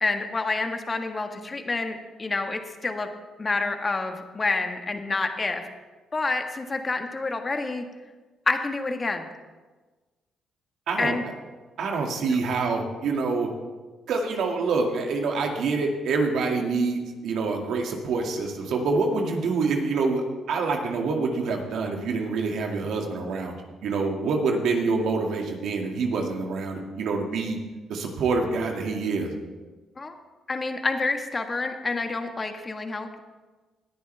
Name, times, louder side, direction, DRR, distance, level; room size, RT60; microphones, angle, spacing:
voice 1, 0.0-3.1 3.4-5.7 6.1-7.8 8.5-9.3 11.0-11.2 12.2-12.4 30.0-30.1 30.5-33.2, left 3 dB, 30° left, 5 dB, 1.5 m, -28 dB
voice 2, 10.9-11.2 11.8-13.5 14.1-23.5 23.8-27.6 27.9-29.3, right 4 dB, 75° right, 2 dB, 2.1 m, -26 dB
18.5 x 10.5 x 3.4 m, 1.3 s
cardioid pair, 90°, 0 cm